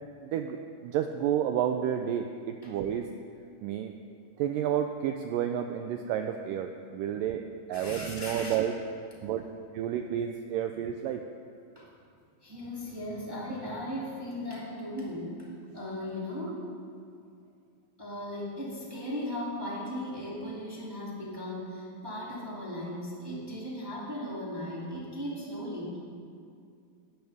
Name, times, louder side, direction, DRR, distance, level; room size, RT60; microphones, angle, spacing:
voice 1, 0.2-0.6 0.8-3.1 3.6-3.9 4.4-7.4 7.7-8.7 9.2-9.5 9.7-11.2, right 9 dB, 85° right, 6 dB, 1.9 m, -30 dB
voice 2, 7.7-8.6 10.7-10.8 11.7-11.9 12.4-15.5 15.7-16.7 18.0-26.0, left 1 dB, 10° right, -6 dB, 1.8 m, -37 dB
19.0 x 13.0 x 3.5 m, 2.3 s
omnidirectional pair, 4.4 m